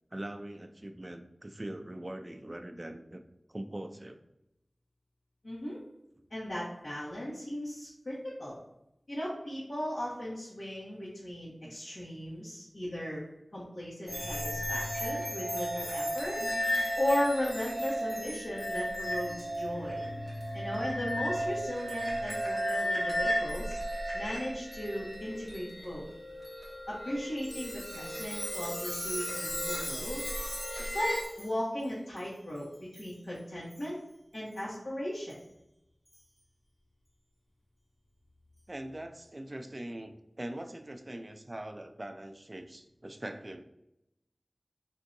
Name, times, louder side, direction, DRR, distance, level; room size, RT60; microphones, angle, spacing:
voice 1, 0.1-3.2 3.5-4.2 11.6-11.8 16.4-16.9 38.7-43.6, right 1 dB, 35° right, 7 dB, 0.3 m, -42 dB
voice 2, 5.4-5.8 6.3-8.6 9.1-13.2 13.5-16.4 17.0-20.0 20.5-23.8 24.1-26.0 26.9-30.2 30.8-34.0 34.3-35.4, left 1 dB, 75° left, -10 dB, 1.3 m, -36 dB
sound 1, 14.1-31.2, equal, 30° left, 1.2 m, -35 dB
Chime, 27.4-31.5 32.2-32.3 32.9-33.1 33.7-33.9 34.6-34.7 35.3-35.4 36.1-36.2, equal, 10° left, 0.7 m, -40 dB
3.7 x 2.6 x 2.6 m, 0.85 s
wide cardioid pair, 65°, 0 cm